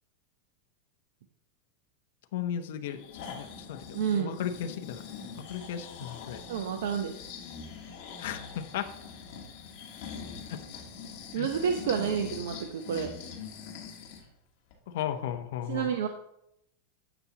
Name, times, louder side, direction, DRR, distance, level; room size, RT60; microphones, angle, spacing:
voice 1, 2.3-3.0 3.3-5.0 5.4-6.4 8.2-8.9 10.5-10.6 11.4-11.5 14.9-15.9, left 9 dB, 60° left, 7 dB, 0.7 m, -35 dB
Breathing, 2.8-14.3 14.7-14.8, left 6 dB, 40° left, 1.6 m, -43 dB
voice 2, 3.9-4.4 6.5-7.1 11.3-13.1 15.7-16.1, right 7 dB, 85° right, 5 dB, 0.7 m, -29 dB
11.0 x 7.0 x 2.9 m, 0.79 s
supercardioid pair, 175°, 0 cm